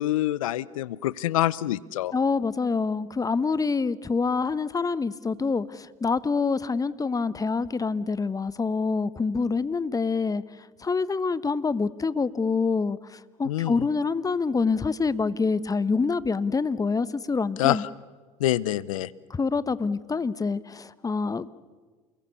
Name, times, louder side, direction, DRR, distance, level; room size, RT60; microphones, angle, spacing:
voice 1, 0.0-2.1 13.5-13.7 17.6-17.8 18.4-19.1, left 14 dB, 80° left, 21 dB, 0.7 m, -25 dB
voice 2, 2.1-10.4 10.8-17.8 19.3-21.5, left 4 dB, 20° left, 17 dB, 1.1 m, -26 dB
28.5 x 22.0 x 7.0 m, 1.4 s
hypercardioid pair, 70°, 17 cm